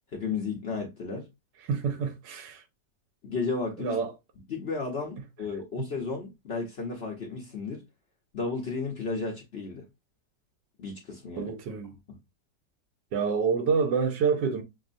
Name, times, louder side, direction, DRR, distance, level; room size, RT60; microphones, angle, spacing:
voice 1, 0.1-1.3 3.2-4.0 4.5-7.8 8.3-9.9 10.8-11.5, left 4 dB, 50° left, 0.7 m, -33 dB
voice 2, 1.6-2.6 3.8-4.1 11.3-12.0 13.1-14.6, right 5 dB, 85° right, 1.4 m, -27 dB
6.1 x 2.1 x 2.5 m
omnidirectional pair, 1.9 m